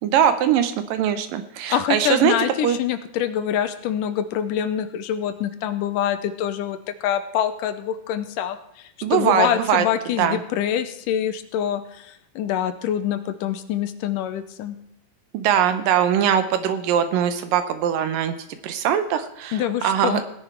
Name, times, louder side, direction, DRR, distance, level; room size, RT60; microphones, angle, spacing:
voice 1, 0.0-2.3 2.6-2.8 9.0-9.8 10.2-10.4 15.3-18.3 18.6-20.2, right 9 dB, 80° right, 10 dB, 2.6 m, -21 dB
voice 2, 1.7-14.8 19.5-20.2, left 10 dB, 75° left, 10 dB, 2.3 m, -25 dB
17.0 x 10.5 x 4.6 m, 0.78 s
omnidirectional pair, 4.0 m